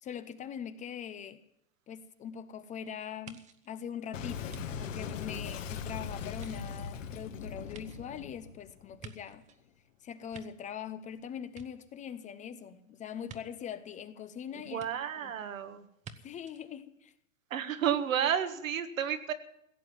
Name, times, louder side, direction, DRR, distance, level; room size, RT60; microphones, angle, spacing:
voice 1, 0.0-1.4 1.9-9.4 10.0-14.8 15.2-15.3 16.2-17.1, left 8 dB, 20° left, 0.7 m, -42 dB
sound 1, 3.2-5.8 6.3-9.6 10.1-11.1 11.4-12.3 13.3-13.4 14.8-14.9 16.0-16.2 16.5-16.6, right 6 dB, 20° right, 0.9 m, -52 dB
Boom, 4.1-9.3, left 7 dB, 70° left, 2.1 m, -40 dB
voice 2, 14.7-15.9 17.5-19.3, right 9 dB, 80° right, 1.7 m, -31 dB
16.5 x 7.6 x 9.6 m
hypercardioid pair, 125°, 39 cm